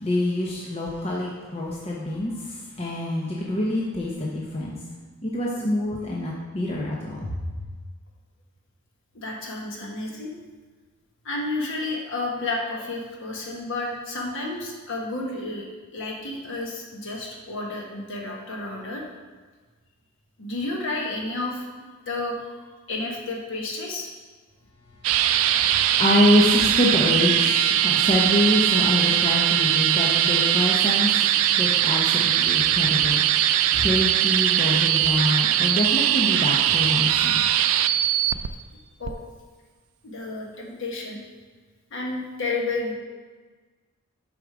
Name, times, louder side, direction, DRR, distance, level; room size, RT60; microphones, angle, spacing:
voice 1, 0.0-2.3 2.8-4.8 5.2-7.2 25.3-31.1 31.5-37.4, left 1 dB, 25° left, -3 dB, 0.7 m, -25 dB
voice 2, 9.1-10.3 11.2-15.6 15.9-19.0 20.4-21.6 22.1-22.4 22.9-24.1 39.0-39.2 40.0-41.2 41.9-42.9, left 2 dB, 55° left, -1 dB, 1.3 m, -31 dB
sound 1, 25.0-38.5 39.0-39.1, right 11 dB, 70° right, 0.4 m, -21 dB
6.7 x 5.0 x 4.9 m, 1.4 s
head